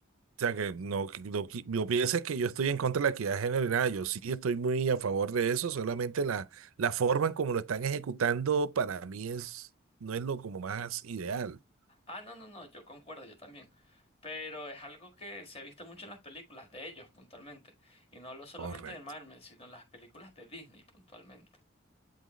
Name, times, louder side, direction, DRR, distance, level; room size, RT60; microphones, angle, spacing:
voice 1, 0.4-9.7 10.0-11.6 18.6-18.9, right 6 dB, 85° right, 0.5 m, -31 dB
voice 2, 11.9-21.4, left 1 dB, 30° left, 1.7 m, -47 dB
8.5 x 3.9 x 3.1 m
head